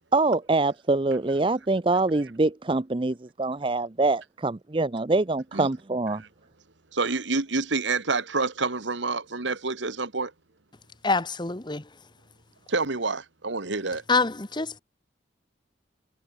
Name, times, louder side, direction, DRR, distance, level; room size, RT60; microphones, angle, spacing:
voice 1, 0.1-6.2, right 2 dB, 25° right, 0.6 m, -24 dB
voice 2, 6.9-10.3 12.7-14.0, right 3 dB, 75° right, 1.8 m, -28 dB
voice 3, 11.0-11.9 14.1-14.8, left 3 dB, 25° left, 1.2 m, -25 dB
head